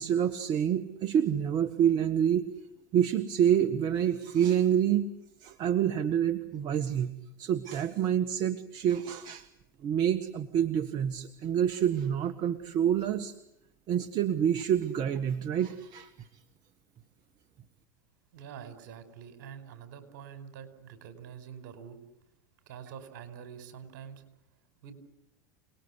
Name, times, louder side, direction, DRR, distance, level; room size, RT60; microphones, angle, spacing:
voice 1, 0.0-2.6 2.9-5.1 5.4-7.1 7.4-9.5 9.8-13.3 13.9-16.3, right 9 dB, 45° right, 9 dB, 1.6 m, -27 dB
voice 2, 18.3-22.0 22.7-24.2 24.8-25.0, right 8 dB, 70° right, 9 dB, 5.1 m, -46 dB
29.0 x 20.5 x 9.9 m, 0.79 s
hypercardioid pair, 95°, 10 cm